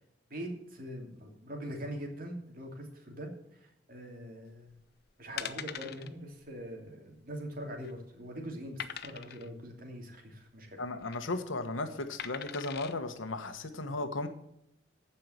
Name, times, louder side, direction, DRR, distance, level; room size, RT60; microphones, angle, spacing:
voice 1, 0.3-4.7 5.2-10.8 13.8-13.9, equal, 45° right, 2 dB, 2.8 m, -43 dB
sound 1, 4.7-4.9 5.4-6.1 6.4-6.6 6.9-7.0 7.5-8.0 8.8-9.5 10.8-11.2 12.2-12.9 13.5-13.6, left 9 dB, 55° left, 0.7 m, -41 dB
voice 2, 10.8-14.3, left 2 dB, 85° left, 8 dB, 1.3 m, -35 dB
15.0 x 5.7 x 7.8 m, 0.77 s
head